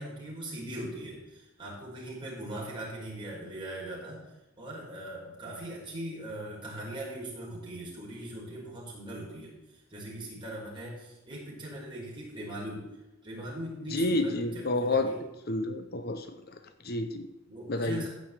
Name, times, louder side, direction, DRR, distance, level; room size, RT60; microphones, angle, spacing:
voice 1, 0.0-4.2 4.6-12.9 13.2-15.2 17.5-18.1, right 1 dB, 25° right, -5 dB, 4.9 m, -40 dB
voice 2, 13.9-15.1 15.5-16.3 16.8-17.3 17.7-18.1, left 2 dB, 50° left, 8 dB, 0.8 m, -29 dB
15.0 x 5.3 x 8.2 m, 0.97 s
head